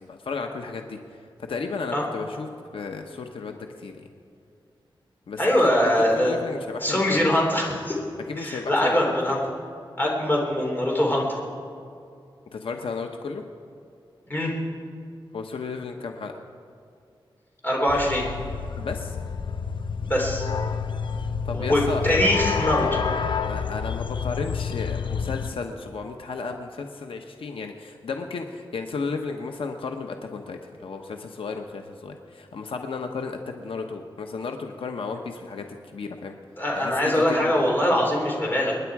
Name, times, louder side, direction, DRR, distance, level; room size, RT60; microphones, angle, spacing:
voice 1, 0.0-4.1 5.3-5.5 5.8-5.9 6.2-7.5 8.3-9.4 10.2-10.3 12.5-13.4 15.3-16.3 18.8-19.2 21.4-22.4 23.5-36.3 36.7-37.5, left 4 dB, 85° left, 4 dB, 1.0 m, -34 dB
voice 2, 5.4-6.3 6.8-8.0 8.4-9.4 10.0-11.4 14.3-14.5 17.6-18.2 20.0-20.5 21.5-23.0 36.6-38.7, left 1 dB, 20° left, -2 dB, 3.4 m, -22 dB
sound 1, 17.9-25.5, left 6 dB, 65° left, 0.6 m, -29 dB
27.5 x 10.0 x 4.8 m, 2.4 s
wide cardioid pair, 140°, 9 cm